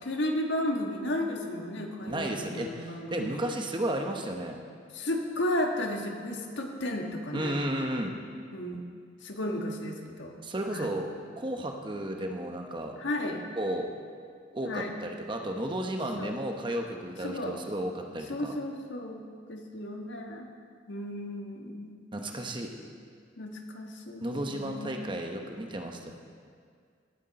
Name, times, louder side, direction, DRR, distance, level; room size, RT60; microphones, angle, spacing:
voice 1, 0.0-3.4 4.9-7.6 8.5-8.8 9.2-10.3 10.7-10.9 13.0-13.4 14.6-14.9 16.2-16.4 17.2-17.6 18.3-20.5 20.9-21.9 23.4-24.9, left 1 dB, 70° left, 2 dB, 1.5 m, -33 dB
voice 2, 2.1-4.6 7.3-8.2 10.4-13.0 13.6-13.9 14.5-18.5 22.1-22.7 24.2-26.1, right 1 dB, 25° right, 3 dB, 1.0 m, -33 dB
18.0 x 8.3 x 4.2 m, 2.1 s
head